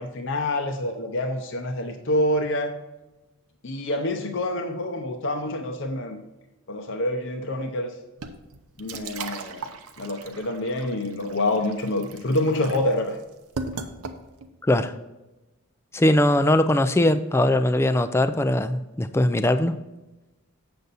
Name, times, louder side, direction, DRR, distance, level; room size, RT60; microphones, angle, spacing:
voice 1, 0.0-2.7 3.6-6.2 6.7-7.9 8.8-13.2, left 1 dB, 55° left, 4 dB, 0.7 m, -27 dB
sound 1, 8.2-14.6, right 4 dB, 80° right, 0.7 m, -38 dB
voice 2, 14.6-14.9 15.9-19.7, left 1 dB, 10° left, 10 dB, 0.3 m, -20 dB
7.8 x 6.9 x 4.0 m, 1.0 s
head